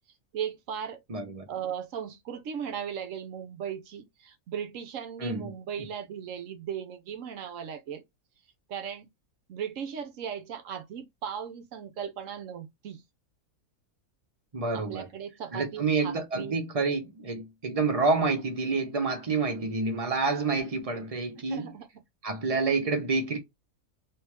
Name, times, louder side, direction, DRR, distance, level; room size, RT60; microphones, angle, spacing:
voice 1, 0.3-1.0 1.5-8.0 8.7-9.0 9.5-13.0 14.7-16.6 21.4-21.9, right 8 dB, 70° right, 0.9 m, -37 dB
voice 2, 1.1-1.4 5.2-5.5 14.5-15.1 15.5-21.7 22.2-23.4, right 4 dB, 30° right, 0.8 m, -28 dB
3.4 x 2.7 x 3.0 m
omnidirectional pair, 1.5 m